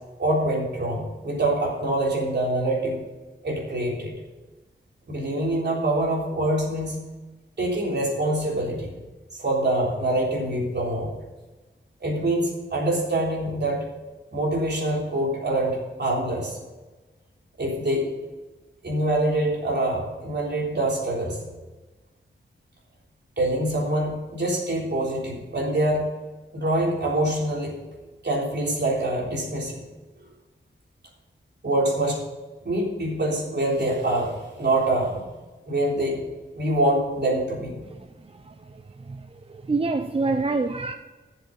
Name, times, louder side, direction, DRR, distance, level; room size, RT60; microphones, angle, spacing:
voice 1, 0.2-3.0 3.4-4.1 5.1-7.0 7.6-8.9 9.3-11.1 12.0-13.8 14.3-16.6 17.6-18.1 18.8-21.4 23.4-26.1 26.5-27.7 28.2-29.8 31.6-32.2 32.6-35.2 35.7-36.2 36.5-37.8, right 1 dB, 60° right, 3.7 m, -25 dB
voice 2, 39.1-40.9, right 3 dB, 30° right, 0.5 m, -27 dB
12.0 x 7.4 x 5.4 m
wide cardioid pair, 105°, 20 cm